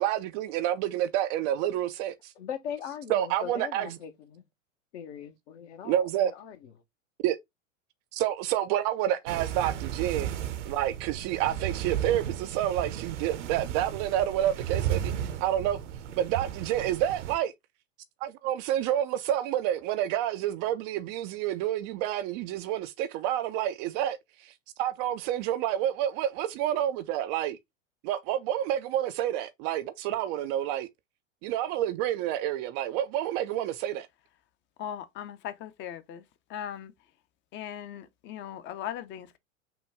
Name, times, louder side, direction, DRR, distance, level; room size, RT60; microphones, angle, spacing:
voice 1, 0.0-2.3 3.1-4.0 5.8-6.3 7.2-7.4 8.1-10.3 10.6-15.8 16.2-17.5 18.2-24.5 24.8-27.6 28.0-30.9 31.4-34.1, right 12 dB, 35° right, 0.4 m, -29 dB
voice 2, 2.4-4.4 4.9-6.6, left 8 dB, 60° left, 1.1 m, -40 dB
sound 1, 9.3-17.4, right 10 dB, 65° right, 0.8 m, -34 dB
voice 3, 34.8-36.2 36.5-36.9 37.5-39.4, left 10 dB, 30° left, 0.6 m, -38 dB
6.0 x 2.3 x 3.3 m
figure-of-eight pair, 95°, 39 cm